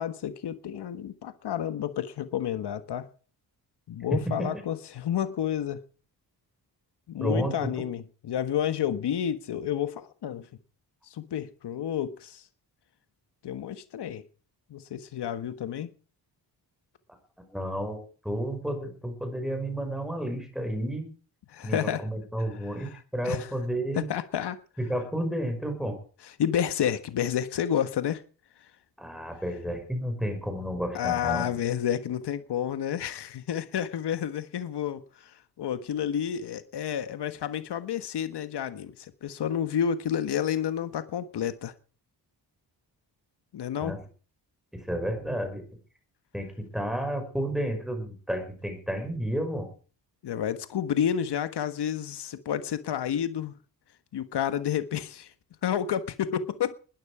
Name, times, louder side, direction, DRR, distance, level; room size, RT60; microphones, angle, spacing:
voice 1, 0.0-3.1 3.9-5.8 7.1-10.5 11.1-12.4 13.4-14.2 14.7-15.9 21.5-22.1 22.8-23.5 23.9-24.6 26.4-28.2 30.9-41.7 43.5-43.9 50.2-53.5 54.1-55.3 55.6-56.8, left 9 dB, 75° left, 1.5 m, -30 dB
voice 2, 4.1-4.5 7.2-7.7 17.5-21.1 21.6-24.1 24.8-26.0 29.0-31.5 43.8-44.0 44.7-45.6 46.3-49.7, right 1 dB, ahead, 5.6 m, -31 dB
20.0 x 13.0 x 4.9 m
wide cardioid pair, 160°, 41 cm